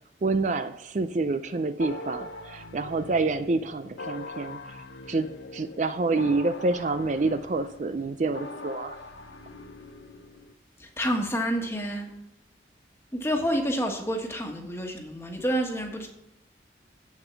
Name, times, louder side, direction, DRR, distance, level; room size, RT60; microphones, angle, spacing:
voice 1, 0.2-4.8 5.1-5.3 5.5-9.0, right 3 dB, 40° right, 10 dB, 0.4 m, -27 dB
sound 1, 1.8-10.5, left 2 dB, 90° left, 1.0 m, -42 dB
voice 2, 10.8-12.1 13.1-16.1, equal, 15° left, 2 dB, 1.4 m, -28 dB
8.0 x 7.2 x 7.0 m, 0.87 s
head